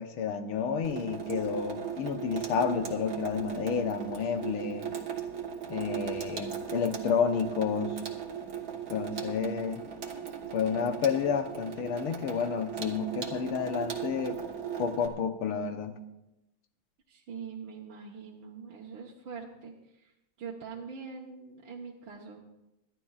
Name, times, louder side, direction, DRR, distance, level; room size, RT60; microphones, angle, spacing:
voice 1, 0.0-4.9 5.7-8.0 8.9-9.8 10.5-14.4 14.8-16.0, left 6 dB, 85° left, 7 dB, 1.9 m, -30 dB
Water tap faucet / Sink (filling or washing), 0.8-15.1, right 8 dB, 50° right, 1.6 m, -38 dB
voice 2, 17.1-20.1 20.4-22.4, right 6 dB, 70° right, -3 dB, 1.9 m, -43 dB
25.0 x 11.5 x 2.4 m, 0.92 s
omnidirectional pair, 2.4 m